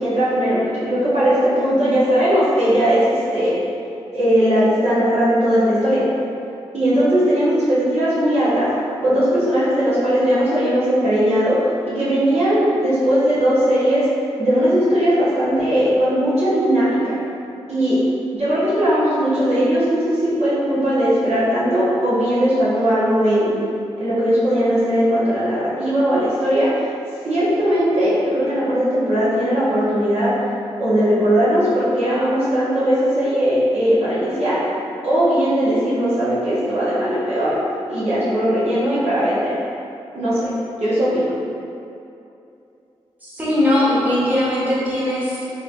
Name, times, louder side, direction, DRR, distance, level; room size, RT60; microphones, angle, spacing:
voice 1, 0.0-3.6 4.1-6.1 6.7-8.7 9.0-14.1 14.4-17.2 17.7-18.0 18.3-23.6 24.0-26.9 27.2-30.4 30.8-34.7 35.0-39.6 40.1-40.5 40.8-41.3, equal, 60° right, -11 dB, 1.1 m, -18 dB
voice 2, 43.2-45.5, left 1 dB, 15° right, -9 dB, 1.3 m, -19 dB
3.2 x 3.0 x 2.5 m, 2.7 s
supercardioid pair, 40°, 12 cm